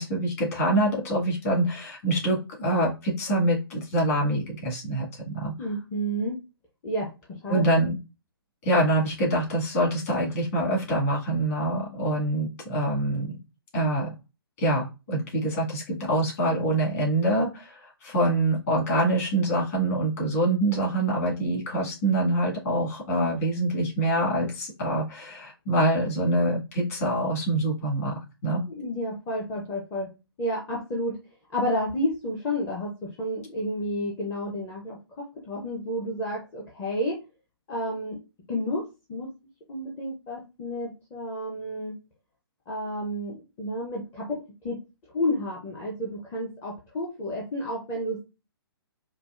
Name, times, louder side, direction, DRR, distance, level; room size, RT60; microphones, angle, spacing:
voice 1, 0.0-5.5 7.5-7.9 8.6-13.4 13.7-14.1 14.6-28.6, right 1 dB, 35° left, -4 dB, 1.8 m, -25 dB
voice 2, 5.6-6.3 6.8-7.1 7.4-7.6 28.8-30.1 30.4-31.2 31.5-37.2 37.7-38.2 38.5-39.3 39.7-41.9 42.7-44.8 45.1-48.2, equal, 15° left, -2 dB, 0.6 m, -31 dB
4.6 x 2.0 x 2.4 m, 0.28 s
figure-of-eight pair, 130°, 13 cm